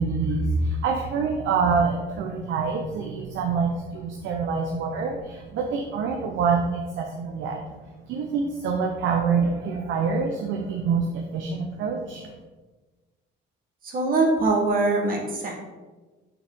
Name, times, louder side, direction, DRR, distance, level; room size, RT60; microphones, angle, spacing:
voice 1, 0.0-7.6 8.0-12.3, right 5 dB, 85° right, 2 dB, 0.8 m, -26 dB
voice 2, 13.8-15.6, right 3 dB, 50° right, 0 dB, 1.3 m, -23 dB
7.2 x 6.2 x 3.7 m, 1.3 s
cardioid pair, 115°, 19 cm